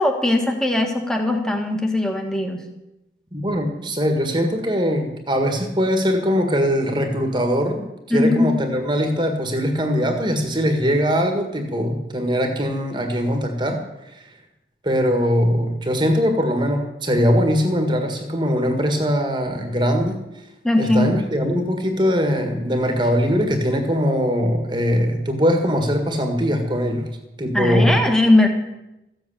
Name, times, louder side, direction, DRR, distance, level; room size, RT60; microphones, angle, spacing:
voice 1, 0.0-2.6 8.1-8.6 20.6-21.1 27.5-28.5, left 2 dB, 5° left, 3 dB, 1.7 m, -19 dB
voice 2, 3.3-13.8 14.1-14.2 14.8-20.2 20.8-27.1 27.4-28.1, equal, 25° right, 5 dB, 1.7 m, -21 dB
14.5 x 7.9 x 8.5 m, 0.92 s
head